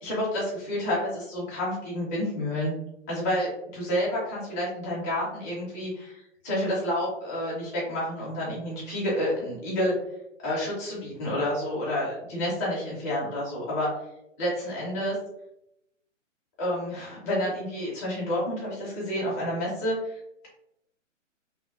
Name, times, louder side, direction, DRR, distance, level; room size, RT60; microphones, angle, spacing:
voice 1, 0.0-2.7 3.1-6.2 6.4-9.9 10.4-13.9 14.4-15.2 16.6-20.2, left 1 dB, 15° left, -6 dB, 0.5 m, -29 dB
2.8 x 2.1 x 2.3 m, 0.81 s
figure-of-eight pair, 135°, 39 cm